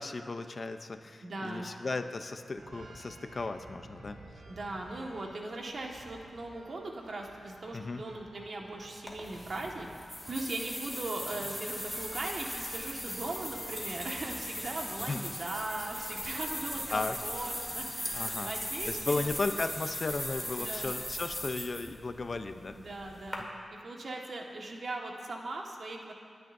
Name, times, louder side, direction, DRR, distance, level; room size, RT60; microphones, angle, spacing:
voice 1, 0.0-4.2 7.7-8.0 15.0-15.2 16.9-17.1 18.1-18.5 18.9-22.8, left 3 dB, 45° left, 8 dB, 0.7 m, -35 dB
voice 2, 1.2-1.8 4.5-9.9 10.3-19.3 20.5-21.0 22.8-23.5 23.7-26.1, right 2 dB, 60° right, 0 dB, 1.7 m, -39 dB
sound 1, 2.6-20.9, right 2 dB, 90° right, 1.9 m, -54 dB
sound 2, 9.1-23.4, equal, ahead, 2.5 m, -39 dB
29.5 x 10.5 x 2.7 m, 2.2 s
cardioid pair, 65°, 0 cm